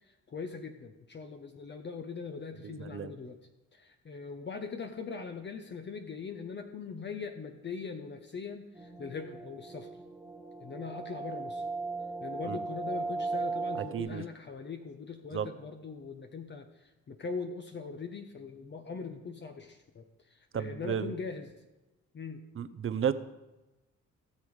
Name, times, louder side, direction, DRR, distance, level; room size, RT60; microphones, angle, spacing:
voice 1, 0.0-3.4 3.7-9.9 10.6-11.6 12.2-21.5 22.1-22.4, left 5 dB, 35° left, 5 dB, 0.9 m, -41 dB
voice 2, 2.6-3.1 12.4-12.6 13.7-14.2 15.3-15.5 20.5-21.1 22.5-23.1, right 8 dB, 45° right, 12 dB, 0.7 m, -33 dB
sound 1, 8.8-14.0, right 3 dB, 10° right, 1.6 m, -37 dB
17.5 x 7.0 x 4.9 m, 1.1 s
cardioid pair, 90°, 30 cm